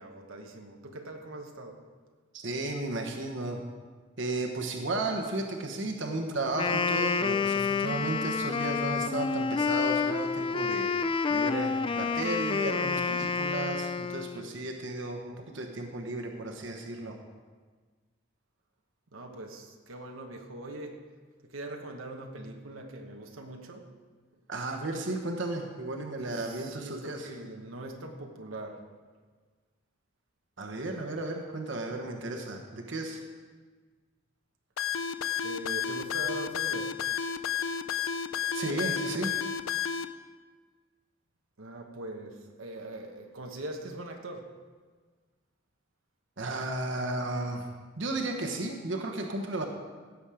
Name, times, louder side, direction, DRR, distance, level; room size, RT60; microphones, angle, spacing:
voice 1, 0.0-1.8 19.1-21.0 21.4-23.9 26.2-28.9 35.4-37.0 41.6-44.5, right 1 dB, 90° right, 2 dB, 1.2 m, -42 dB
voice 2, 2.3-3.6 4.2-10.9 11.3-17.1 24.5-27.3 30.6-33.2 38.5-39.3 46.4-47.7 48.0-49.7, right 2 dB, 65° right, 2 dB, 1.2 m, -34 dB
Wind instrument woodwind instrument, 6.5-14.5, left 5 dB, 25° left, 0.3 m, -29 dB
sound 1, 34.8-40.1, left 7 dB, 90° left, 0.5 m, -31 dB
16.0 x 7.3 x 5.0 m, 1.5 s
head